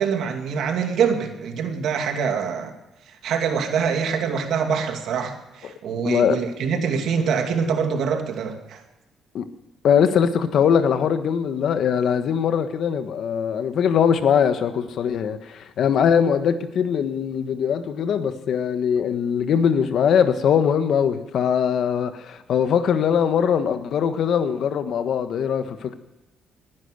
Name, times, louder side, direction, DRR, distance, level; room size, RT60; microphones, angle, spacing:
voice 1, 0.0-2.7 3.2-8.8, right 6 dB, 75° right, 2.5 m, -24 dB
voice 2, 6.0-6.4 9.3-9.5 9.8-25.9, left 7 dB, 70° left, 1.4 m, -21 dB
20.0 x 10.5 x 6.7 m
cardioid pair, 90°, 0 cm